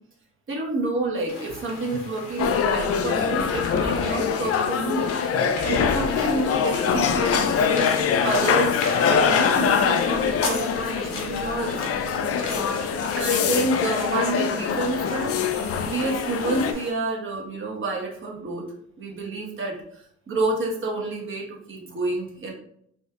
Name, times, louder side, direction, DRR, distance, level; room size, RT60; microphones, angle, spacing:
voice 1, 0.5-5.1 5.6-7.8 8.2-12.2 13.2-18.7 19.0-22.5, right 2 dB, 40° right, -2 dB, 1.2 m, -29 dB
sound 1, 1.3-16.9, left 3 dB, 80° left, 1.0 m, -35 dB
sound 2, 2.4-16.7, left 6 dB, 50° left, 0.4 m, -24 dB
4.2 x 2.3 x 2.9 m, 0.69 s
cardioid pair, 90°, 30 cm